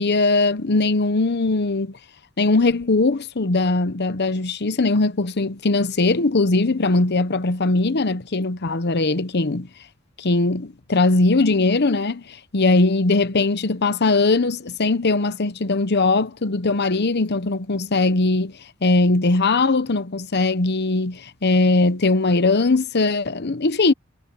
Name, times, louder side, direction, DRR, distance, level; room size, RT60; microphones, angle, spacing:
voice 1, 0.0-2.0 2.4-9.7 10.2-18.5 18.8-23.9, left 3 dB, 55° left, 0.9 m, -20 dB
head